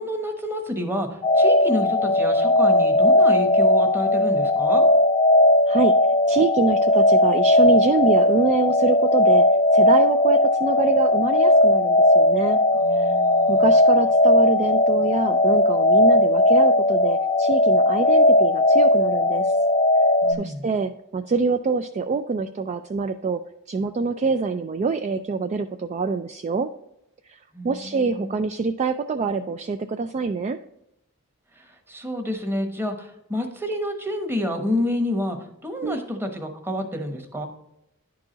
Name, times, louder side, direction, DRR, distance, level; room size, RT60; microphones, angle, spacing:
voice 1, 0.0-4.8 12.7-14.0 20.2-20.7 27.5-28.3 31.6-37.5, left 1 dB, 10° right, 5 dB, 1.0 m, -29 dB
sound 1, 1.2-20.3, left 1 dB, 20° left, 0.5 m, -18 dB
voice 2, 6.3-9.4 9.7-12.6 13.0-13.1 13.5-19.6 20.4-23.4 23.7-26.7 27.3-30.6 35.8-36.0, right 4 dB, 30° right, 8 dB, 0.3 m, -25 dB
10.5 x 4.8 x 3.9 m, 0.84 s
head